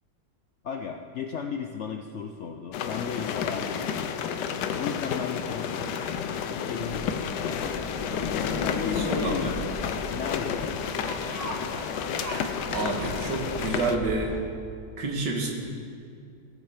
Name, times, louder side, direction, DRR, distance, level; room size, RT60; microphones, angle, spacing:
voice 1, 0.6-4.2 4.8-7.9 8.6-11.2, left 6 dB, 70° left, 5 dB, 0.7 m, -36 dB
sound 1, 2.7-14.0, left 7 dB, 90° left, 1.3 m, -31 dB
sound 2, 6.8-14.4, right 1 dB, 20° right, 1.5 m, -39 dB
voice 2, 8.9-9.5 12.7-14.3 15.0-15.5, right 3 dB, 85° right, 0 dB, 2.1 m, -29 dB
18.0 x 7.1 x 5.0 m, 2.3 s
omnidirectional pair, 1.8 m